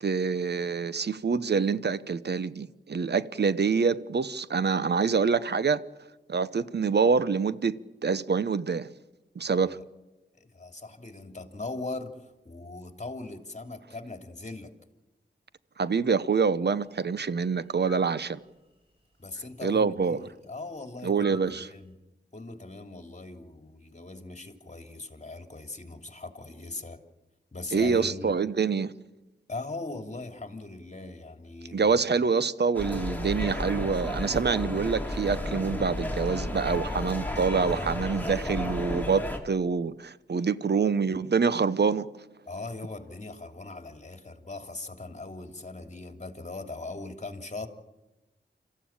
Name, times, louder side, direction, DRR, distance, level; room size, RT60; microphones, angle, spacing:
voice 1, 0.0-5.8 6.3-7.8 8.0-8.9 9.3-9.8 15.8-18.4 19.6-20.3 21.0-21.7 27.7-28.9 31.7-42.1, right 5 dB, 65° right, 1.0 m, -26 dB
voice 2, 10.4-14.7 19.2-21.9 22.3-27.0 27.5-28.4 29.5-32.0 42.5-47.7, left 2 dB, 40° left, 2.9 m, -40 dB
sound 1, 17.9-18.3 21.2-21.6, equal, 30° right, 6.0 m, -44 dB
sound 2, 32.7-39.4, left 1 dB, 10° left, 3.6 m, -32 dB
27.0 x 14.5 x 8.8 m
cardioid pair, 50°, 19 cm